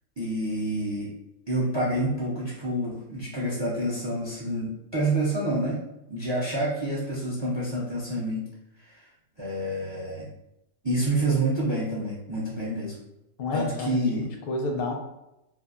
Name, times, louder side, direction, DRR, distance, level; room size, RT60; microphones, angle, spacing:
voice 1, 0.2-1.1 1.5-5.8 6.1-8.5 8.8-9.1 9.4-10.3 10.8-13.0 13.5-14.3, right 1 dB, 45° right, -6 dB, 0.3 m, -28 dB
voice 2, 13.4-14.9, left 2 dB, 60° left, 2 dB, 0.7 m, -30 dB
2.7 x 2.4 x 2.4 m, 0.89 s
omnidirectional pair, 1.3 m